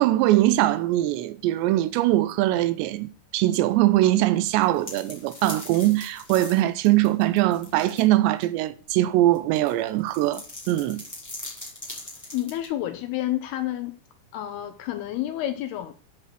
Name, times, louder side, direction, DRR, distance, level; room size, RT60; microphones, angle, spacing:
voice 1, 0.0-11.0, right 15 dB, 85° right, 2.8 m, -22 dB
sound 1, 4.5-8.0 8.4-8.5 9.3-12.7, left 1 dB, 5° left, 1.9 m, -40 dB
voice 2, 12.3-14.0 14.3-15.9, left 13 dB, 80° left, 2.4 m, -29 dB
10.5 x 5.0 x 6.2 m
omnidirectional pair, 5.1 m